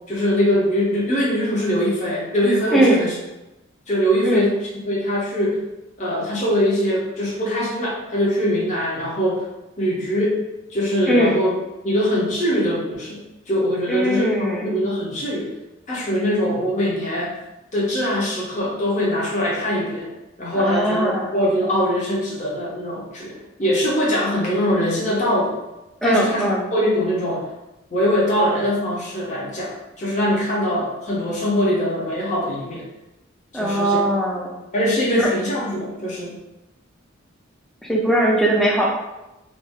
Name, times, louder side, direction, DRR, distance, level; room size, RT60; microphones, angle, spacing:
voice 1, 0.1-3.2 3.9-4.6 4.8-5.6 6.0-9.4 9.8-10.4 10.7-11.5 11.8-13.2 13.5-15.5 15.9-17.3 17.7-20.1 20.4-25.6 26.0-27.4 27.9-29.7 30.0-32.9 33.5-34.0 34.7-36.4, equal, 35° left, -5 dB, 0.7 m, -22 dB
voice 2, 2.7-3.0 4.2-4.5 11.1-11.4 13.9-14.7 20.6-21.3 26.0-26.7 33.5-34.5 35.1-35.3 37.8-38.9, right 1 dB, ahead, -2 dB, 0.4 m, -20 dB
2.6 x 2.0 x 3.5 m, 0.99 s
head